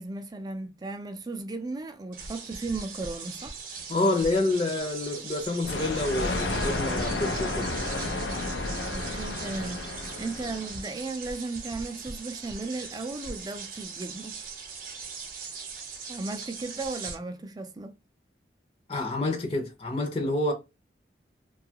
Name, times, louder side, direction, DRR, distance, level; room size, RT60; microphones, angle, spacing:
voice 1, 0.0-3.6 8.9-14.4 16.1-18.0, right 3 dB, 20° right, 0.4 m, -36 dB
sound 1, 2.1-17.1, right 5 dB, 50° right, 0.7 m, -40 dB
voice 2, 3.9-7.7 18.9-20.5, left 2 dB, 35° left, 0.7 m, -28 dB
Thunder, 5.6-11.0, left 2 dB, 90° left, 0.5 m, -31 dB
2.7 x 2.3 x 2.7 m
head